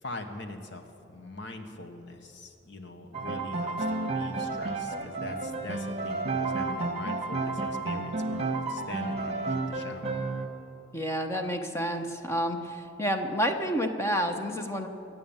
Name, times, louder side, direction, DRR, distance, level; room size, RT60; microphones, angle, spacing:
voice 1, 0.0-0.8 1.1-10.2, left 2 dB, 65° left, 6 dB, 1.3 m, -42 dB
Piano, 3.1-10.5, right 3 dB, 35° right, 1.4 m, -31 dB
voice 2, 10.9-14.9, equal, 15° left, 4 dB, 1.1 m, -29 dB
23.5 x 8.5 x 7.2 m, 2.9 s
head